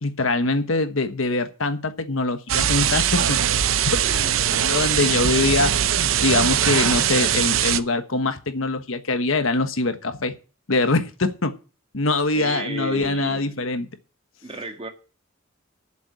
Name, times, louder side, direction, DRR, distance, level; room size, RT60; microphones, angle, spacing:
voice 1, 0.0-3.4 3.8-10.4 10.7-11.6 11.9-13.9, left 3 dB, 80° left, 1.3 m, -23 dB
sound 1, 2.5-7.8, right 9 dB, 80° right, 0.6 m, -21 dB
voice 2, 4.0-4.6 12.3-13.5 14.4-14.9, right 2 dB, 30° right, 1.7 m, -34 dB
8.5 x 7.2 x 8.3 m
head